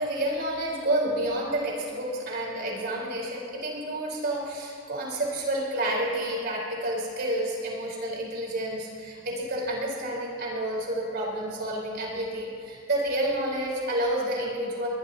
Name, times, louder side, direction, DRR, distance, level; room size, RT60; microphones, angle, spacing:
voice 1, 0.0-14.9, right 1 dB, 55° right, -3 dB, 4.8 m, -29 dB
21.5 x 21.5 x 3.0 m, 2.6 s
head